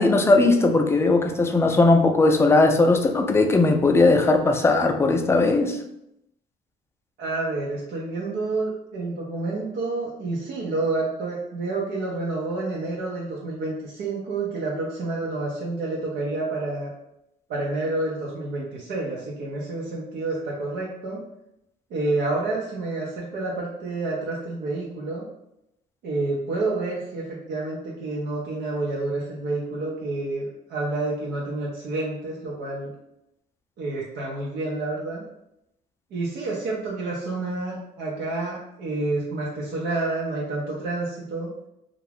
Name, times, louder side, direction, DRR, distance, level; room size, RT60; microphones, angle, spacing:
voice 1, 0.0-5.8, left 3 dB, 15° left, 4 dB, 0.3 m, -18 dB
voice 2, 7.2-16.9 17.5-21.2 21.9-25.3 26.0-32.9 33.8-35.2 36.1-41.5, right 2 dB, 70° right, -4 dB, 0.6 m, -29 dB
2.4 x 2.1 x 3.3 m, 0.82 s
cardioid pair, 110°, 17 cm